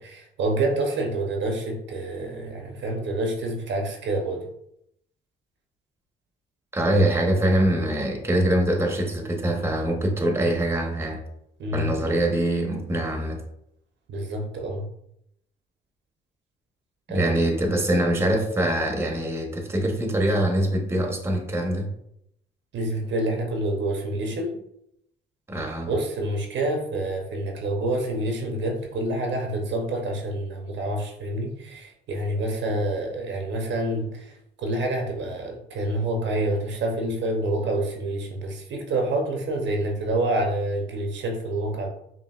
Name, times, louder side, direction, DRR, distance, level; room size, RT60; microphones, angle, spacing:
voice 1, 0.0-4.5 11.6-11.9 14.1-14.9 17.1-17.4 22.7-24.6 25.9-41.9, right 1 dB, 65° right, 0.7 m, -27 dB
voice 2, 6.7-11.2 11.7-13.4 17.1-21.9 25.5-25.9, right 1 dB, 10° right, 0.9 m, -23 dB
5.3 x 2.7 x 2.4 m
cardioid pair, 85°, 20 cm